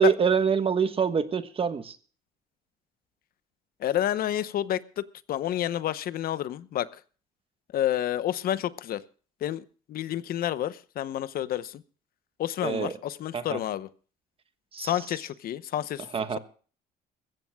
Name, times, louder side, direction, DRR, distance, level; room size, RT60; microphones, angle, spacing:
voice 1, 0.0-2.0 12.6-12.9 13.3-13.6 14.7-14.9 16.1-16.4, right 6 dB, 35° right, 10 dB, 1.3 m, -25 dB
voice 2, 3.8-6.9 7.7-9.0 9.4-11.8 12.4-13.9 14.8-16.1, left 11 dB, 60° left, 15 dB, 0.9 m, -29 dB
22.0 x 15.5 x 2.3 m, 0.40 s
cardioid pair, 110°, 17 cm